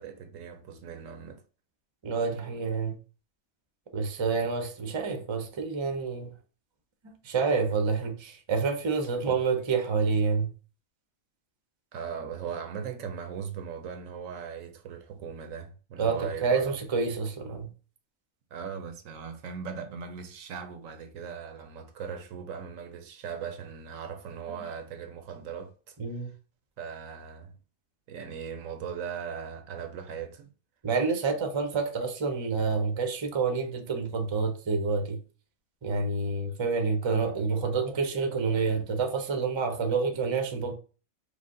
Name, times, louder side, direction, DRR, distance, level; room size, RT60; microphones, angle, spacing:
voice 1, 0.0-1.4 9.2-9.4 11.9-16.8 18.5-26.0 26.8-27.5 28.1-30.5, right 7 dB, 80° right, 1.1 m, -39 dB
voice 2, 2.0-3.0 3.9-6.3 7.0-10.5 16.0-17.7 26.0-26.3 30.8-35.2 35.8-40.7, right 4 dB, 30° right, 0.6 m, -28 dB
5.0 x 2.1 x 3.7 m
omnidirectional pair, 1.4 m